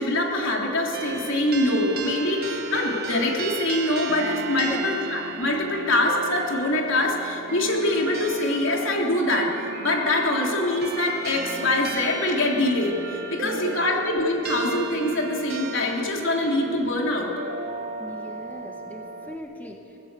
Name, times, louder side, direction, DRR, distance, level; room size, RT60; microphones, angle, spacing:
voice 1, 0.0-9.5 9.8-17.3, left 1 dB, 70° left, 0 dB, 3.3 m, -24 dB
sound 1, 0.9-19.4, right 3 dB, 50° right, 1.5 m, -35 dB
voice 2, 4.6-4.9 13.4-14.0 18.0-20.0, equal, 10° left, 2 dB, 1.3 m, -40 dB
22.0 x 15.5 x 8.2 m, 3.0 s
head